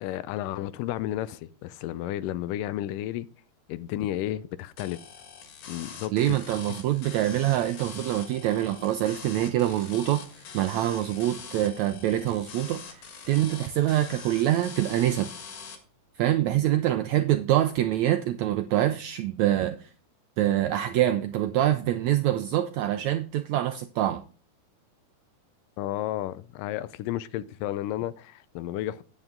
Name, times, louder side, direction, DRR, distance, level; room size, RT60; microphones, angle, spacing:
voice 1, 0.0-3.3 3.7-5.0 5.7-6.4 25.8-29.0, left 13 dB, 80° left, 2.1 m, -32 dB
sound 1, 4.8-15.8, left 6 dB, 65° left, 3.0 m, -44 dB
voice 2, 6.1-15.3 16.2-19.9 20.4-24.2, right 13 dB, 85° right, 1.6 m, -25 dB
9.7 x 9.0 x 3.7 m
omnidirectional pair, 3.9 m